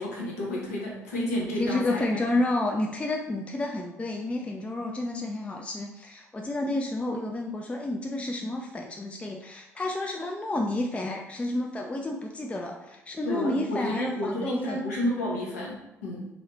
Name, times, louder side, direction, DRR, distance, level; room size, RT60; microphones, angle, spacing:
voice 1, 0.0-2.2 13.2-16.3, left 1 dB, 75° left, -3 dB, 0.8 m, -31 dB
voice 2, 1.6-14.8, left 2 dB, 15° left, 1 dB, 0.4 m, -30 dB
3.0 x 2.8 x 2.9 m, 0.96 s
figure-of-eight pair, 50°, 8 cm